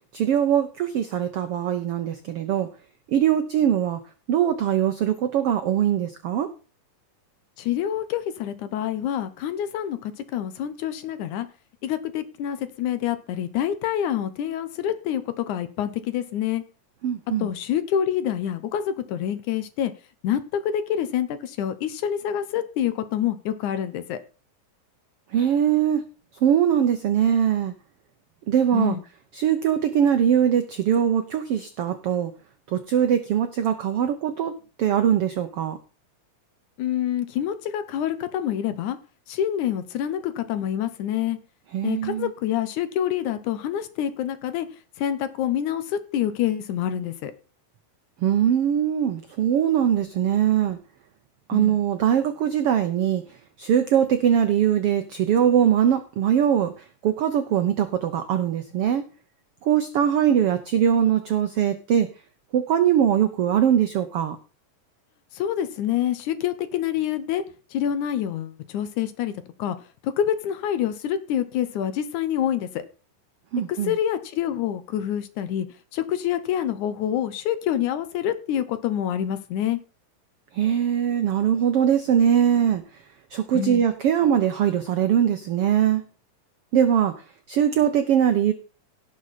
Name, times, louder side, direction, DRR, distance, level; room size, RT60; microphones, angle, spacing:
voice 1, 0.1-2.7 3.1-4.0 4.3-6.5 17.0-17.5 25.3-26.0 26.4-27.7 28.5-29.0 29.3-32.3 32.7-35.8 41.7-42.3 48.2-50.8 51.5-53.2 53.6-59.0 59.6-62.1 62.5-64.4 73.5-74.0 80.5-82.8 83.3-86.0 86.7-87.2 87.5-88.5, right 9 dB, 80° right, 8 dB, 1.3 m, -21 dB
voice 2, 7.6-11.5 11.8-16.6 17.4-19.9 20.2-24.2 28.7-29.0 36.8-39.0 39.3-41.4 41.8-44.7 45.0-47.3 51.5-51.8 65.3-67.4 67.7-69.3 69.6-69.8 70.0-72.8 73.7-75.7 75.9-79.8 83.5-83.8, left 10 dB, 70° left, 12 dB, 2.2 m, -27 dB
17.5 x 6.5 x 4.1 m, 0.35 s
omnidirectional pair, 3.9 m